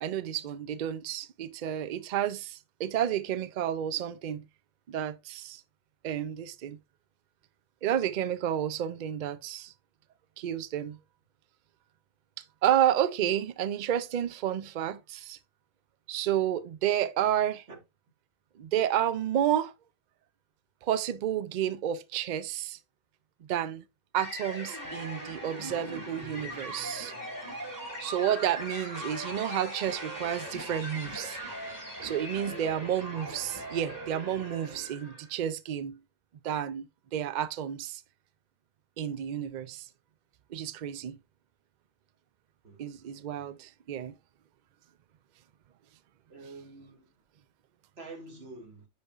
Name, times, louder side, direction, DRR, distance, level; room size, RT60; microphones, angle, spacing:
voice 1, 0.0-4.4 4.9-5.6 6.0-6.8 7.8-9.7 10.4-11.0 12.6-15.4 16.1-17.6 18.6-19.7 20.8-22.8 23.5-23.8 24.1-27.1 28.0-31.4 32.0-36.0 36.4-38.0 39.0-39.9 40.5-41.2 42.8-44.2, right 10 dB, 80° right, 0.4 m, -30 dB
sound 1, 24.2-35.3, equal, 15° right, 2.1 m, -40 dB
voice 2, 32.5-32.8 42.6-42.9 43.4-43.5 46.3-47.1 48.0-48.9, right 3 dB, 50° right, 1.9 m, -46 dB
10.5 x 4.2 x 2.4 m
omnidirectional pair, 1.4 m